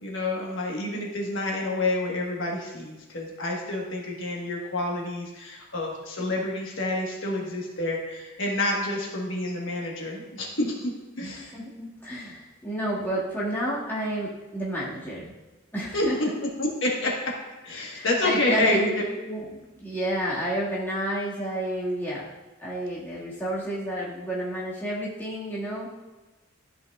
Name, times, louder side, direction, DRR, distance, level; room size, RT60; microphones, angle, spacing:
voice 1, 0.0-11.5 15.9-16.3 16.6-17.4 17.6-19.0, left 2 dB, 65° left, -1 dB, 1.4 m, -28 dB
voice 2, 11.2-15.3 15.7-16.2 17.9-22.3 22.6-25.9, right 1 dB, 10° left, -8 dB, 1.8 m, -31 dB
13.5 x 5.8 x 2.4 m, 1.1 s
head